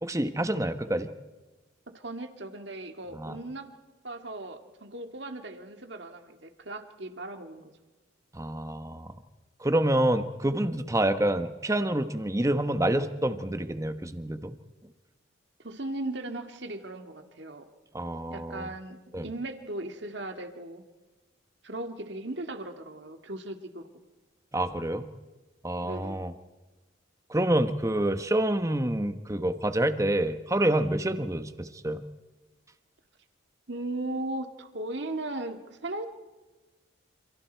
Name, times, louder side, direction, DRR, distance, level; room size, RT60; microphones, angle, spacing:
voice 1, 0.0-1.1 3.1-3.4 8.3-9.1 9.6-14.6 17.9-18.7 19.1-19.3 24.5-25.1 25.6-26.3 27.3-32.0, right 1 dB, 15° right, 10 dB, 1.1 m, -27 dB
voice 2, 1.9-3.7 4.0-7.7 15.6-17.7 18.3-20.8 21.6-23.8 25.8-26.2 33.7-36.1, right 2 dB, 55° right, 6 dB, 2.0 m, -37 dB
28.5 x 28.0 x 4.6 m, 1.2 s
head